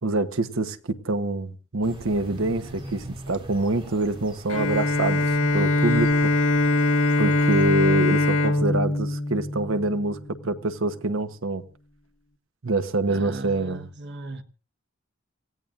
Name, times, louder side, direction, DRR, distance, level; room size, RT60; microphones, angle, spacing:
voice 1, 0.0-6.3 7.2-11.6 12.6-13.9, right 2 dB, 85° right, 1.1 m, -26 dB
sound 1, 1.8-7.7, right 1 dB, 25° right, 2.8 m, -42 dB
Bowed string instrument, 4.5-10.2, left 2 dB, 70° left, 1.8 m, -22 dB
voice 2, 13.1-14.4, right 2 dB, 60° right, 1.3 m, -37 dB
28.0 x 16.0 x 2.5 m
head